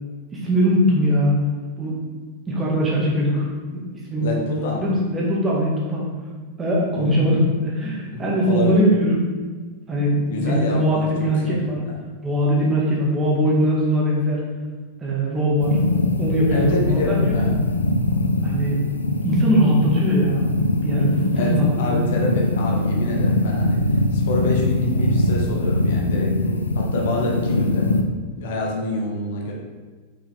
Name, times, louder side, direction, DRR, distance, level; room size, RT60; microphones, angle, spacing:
voice 1, 0.3-1.4 1.8-2.0 2.5-3.5 3.7-3.8 4.1-4.4 4.7-6.1 6.6-9.3 9.9-11.8 12.2-14.4 15.0-15.8 16.2-17.4 18.4-18.8 19.2-20.4 20.8-22.0, equal, 20° right, -4 dB, 2.1 m, -20 dB
voice 2, 4.2-4.8 6.9-7.2 8.1-8.8 10.3-12.0 16.5-17.6 21.3-23.8 24.1-27.9 28.4-29.5, left 2 dB, 55° left, 0 dB, 1.1 m, -27 dB
sound 1, 15.6-28.0, left 2 dB, 80° left, 0.5 m, -22 dB
6.6 x 5.6 x 3.6 m, 1.4 s
figure-of-eight pair, 90°, 0 cm